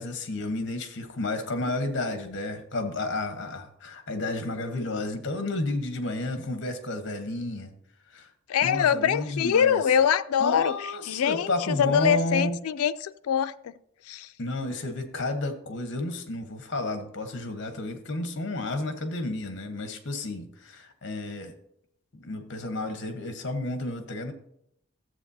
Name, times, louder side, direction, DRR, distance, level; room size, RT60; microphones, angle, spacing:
voice 1, 0.0-7.7 8.1-8.3 8.6-9.8 10.4-12.6 14.4-21.5 22.1-24.3, left 2 dB, 55° left, 1.1 m, -31 dB
voice 2, 8.5-10.7 11.1-13.7 14.1-14.3, left 8 dB, 90° left, 0.4 m, -24 dB
13.0 x 7.7 x 2.7 m
head